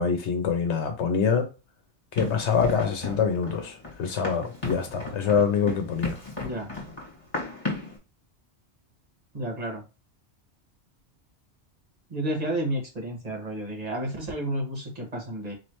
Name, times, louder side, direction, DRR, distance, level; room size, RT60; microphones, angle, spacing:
voice 1, 0.0-1.5 2.1-6.2, left 6 dB, 80° left, 1.0 m, -25 dB
Run, 2.2-8.0, left 2 dB, 30° left, 1.9 m, -35 dB
voice 2, 9.3-9.8 12.1-15.5, right 1 dB, 35° right, 1.5 m, -31 dB
4.4 x 3.1 x 3.0 m
omnidirectional pair, 1.2 m